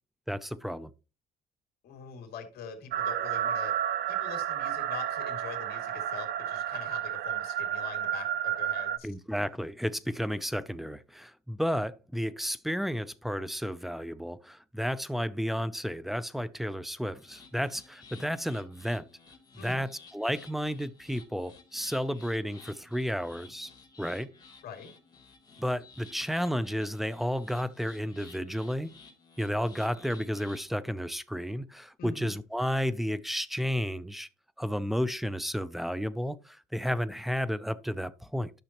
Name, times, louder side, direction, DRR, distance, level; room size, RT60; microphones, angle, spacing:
voice 1, 0.3-0.9 9.0-19.1 19.6-19.9 20.1-23.7 24.0-24.3 25.6-28.9 29.4-34.3 34.6-38.5, equal, ahead, 0.6 m, -32 dB
voice 2, 1.8-3.7 4.1-9.1 19.6-19.9 24.6-24.9 32.0-32.4, left 7 dB, 65° left, 2.7 m, -44 dB
sound 1, 2.9-9.0, right 10 dB, 75° right, 0.6 m, -31 dB
sound 2, 17.1-30.7, left 4 dB, 25° left, 3.0 m, -54 dB
12.0 x 6.2 x 3.0 m
cardioid pair, 110°, 17 cm